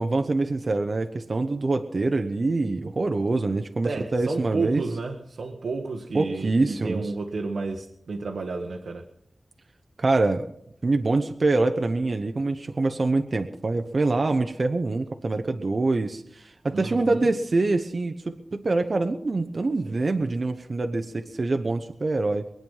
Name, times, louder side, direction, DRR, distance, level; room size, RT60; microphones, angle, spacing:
voice 1, 0.0-4.8 6.1-7.1 10.0-10.5 10.8-22.5, right 3 dB, 50° right, 6 dB, 0.9 m, -25 dB
voice 2, 3.8-9.1 16.7-17.2, right 3 dB, 90° right, 2 dB, 1.3 m, -31 dB
23.0 x 9.0 x 5.5 m, 0.72 s
wide cardioid pair, 95°, 0 cm